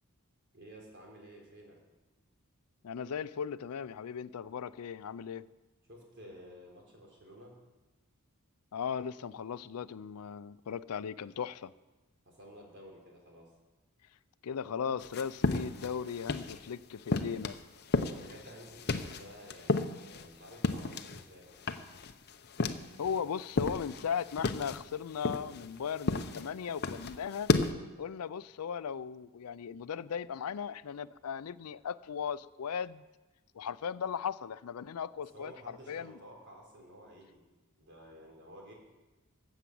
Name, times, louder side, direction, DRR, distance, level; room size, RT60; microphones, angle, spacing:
voice 1, 0.5-1.8 5.9-7.5 12.3-13.5 18.2-21.7 35.3-37.4 37.8-38.7, equal, 55° right, 0 dB, 3.6 m, -52 dB
voice 2, 2.8-5.5 8.7-11.7 14.4-17.6 23.0-27.5 28.0-33.0 33.5-36.2, left 7 dB, 85° left, 17 dB, 0.4 m, -37 dB
sound 1, 15.0-16.7 17.1-21.3 21.6-23.2 23.5-27.7, left 3 dB, 45° left, 0.7 m, -33 dB
13.0 x 8.2 x 7.7 m, 1.2 s
head